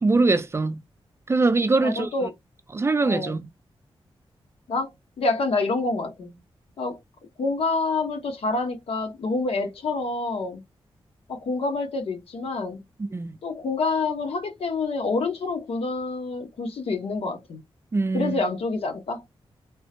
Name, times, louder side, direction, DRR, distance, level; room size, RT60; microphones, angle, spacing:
voice 1, 0.0-0.8 1.3-2.3 2.7-3.5 13.0-13.4 17.9-18.4, right 3 dB, 25° right, 0.4 m, -23 dB
voice 2, 1.8-2.3 3.0-3.4 4.7-4.9 5.2-6.4 6.8-7.0 7.4-10.6 11.3-12.8 13.4-17.6 18.1-19.2, left 3 dB, 80° left, 0.9 m, -27 dB
3.5 x 2.0 x 2.9 m
wide cardioid pair, 100°, 10 cm